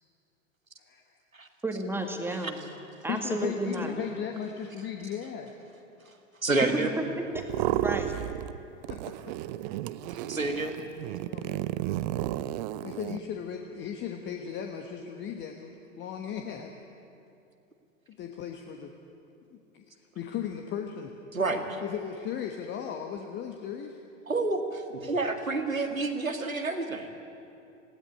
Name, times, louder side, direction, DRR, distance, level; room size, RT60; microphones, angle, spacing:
voice 1, 1.6-2.6 3.0-4.0 6.6-8.2, right 1 dB, 5° right, 4 dB, 1.9 m, -32 dB
voice 2, 3.1-5.5 8.9-9.3 11.3-11.7 12.8-16.7 18.1-18.9 19.5-19.8 20.1-21.1 21.8-24.0, left 8 dB, 30° left, 4 dB, 1.3 m, -36 dB
voice 3, 6.4-6.9 10.3-10.8 21.3-21.8 24.3-27.1, right 3 dB, 85° right, 5 dB, 2.1 m, -29 dB
sound 1, 7.3-8.6 8.8-13.2, right 14 dB, 35° right, 0.6 m, -32 dB
19.0 x 17.0 x 9.8 m, 2.7 s
figure-of-eight pair, 95°, 40 cm